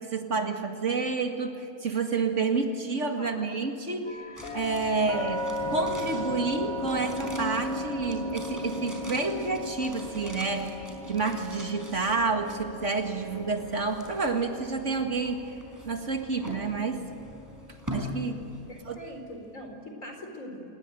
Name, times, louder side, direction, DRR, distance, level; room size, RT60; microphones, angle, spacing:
voice 1, 0.0-15.6 15.8-17.0 17.9-18.4 18.9-19.0, right 4 dB, 55° right, 5 dB, 2.3 m, -29 dB
voice 2, 3.2-3.7 18.7-20.6, equal, 65° left, 3 dB, 4.5 m, -42 dB
sound 1, 4.1-17.9, left 1 dB, 80° left, 3.9 m, -39 dB
sound 2, 4.3-19.5 19.8-19.9, equal, 10° right, 4.5 m, -44 dB
sound 3, 5.6-15.7 16.0-17.6, left 1 dB, 20° left, 1.4 m, -39 dB
27.5 x 20.0 x 9.1 m, 3.0 s
omnidirectional pair, 1.5 m